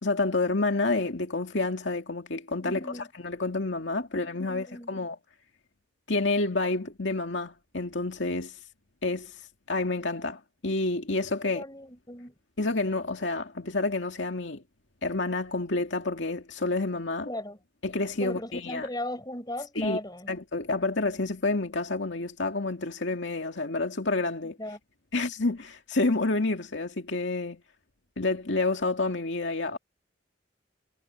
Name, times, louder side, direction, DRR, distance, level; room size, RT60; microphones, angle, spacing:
voice 1, 0.0-2.8 3.2-5.2 6.1-8.6 9.0-9.4 9.7-11.6 12.6-14.6 15.0-17.3 17.8-18.9 19.8-20.0 20.3-24.6 25.1-27.6 28.2-29.8, left 2 dB, 80° left, 2.2 m, -29 dB
voice 2, 2.6-3.1 4.0-4.9 11.5-12.3 17.3-17.6 18.2-20.3 24.4-24.8, left 1 dB, 20° left, 5.7 m, -37 dB
head